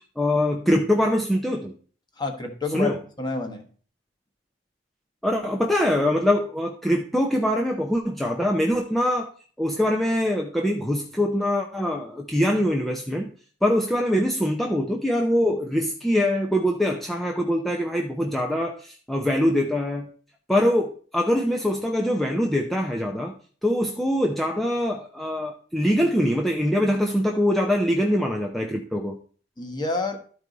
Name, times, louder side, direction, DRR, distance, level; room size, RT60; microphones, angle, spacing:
voice 1, 0.2-1.7 2.7-3.0 5.2-9.3 9.6-13.3 13.6-20.1 20.5-23.3 23.6-29.2, equal, ahead, 0 dB, 0.6 m, -23 dB
voice 2, 2.2-3.6 29.6-30.2, left 3 dB, 25° left, 4 dB, 1.4 m, -29 dB
12.5 x 4.8 x 3.9 m, 0.43 s
head